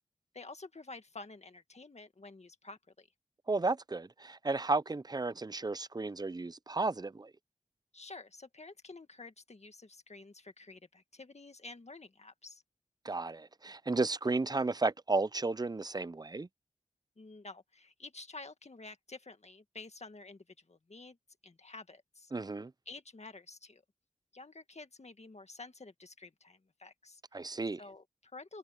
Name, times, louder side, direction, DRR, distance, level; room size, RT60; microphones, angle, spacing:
voice 1, 0.3-3.1 7.9-12.6 17.2-21.2 21.4-22.3 22.9-23.8 24.3-27.2 27.8-28.6, left 3 dB, 55° left, 1.9 m, -50 dB
voice 2, 3.5-7.3 13.0-16.5 22.3-22.7 27.3-27.8, right 3 dB, 30° right, 0.5 m, -33 dB
cardioid pair, 40°, 14 cm